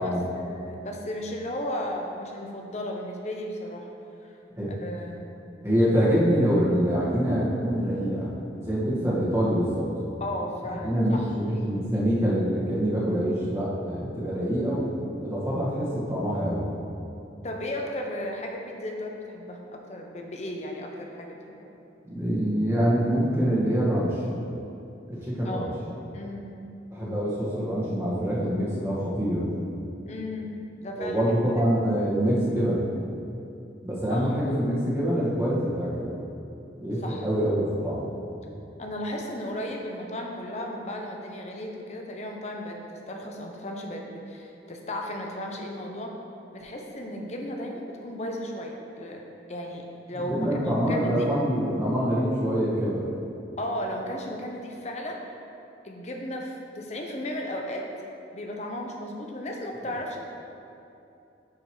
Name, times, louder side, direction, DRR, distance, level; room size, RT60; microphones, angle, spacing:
voice 1, 0.0-3.9 4.2-4.3 4.8-5.4 10.2-11.3 17.4-21.6 25.4-25.7 26.1-26.5 30.1-31.3 34.1-34.2 37.0-37.3 38.8-46.1 46.5-49.2 49.5-51.2 53.6-55.2 55.8-57.9 58.3-60.2, left 1 dB, 35° left, 1 dB, 0.7 m, -35 dB
voice 2, 5.6-8.3 8.6-9.9 10.8-14.9 15.2-16.7 22.0-24.2 25.1-25.7 26.9-29.5 30.9-32.8 33.8-36.1 36.8-38.0 50.1-53.0, equal, 15° right, -8 dB, 1.6 m, -25 dB
10.5 x 5.2 x 3.1 m, 2.7 s
head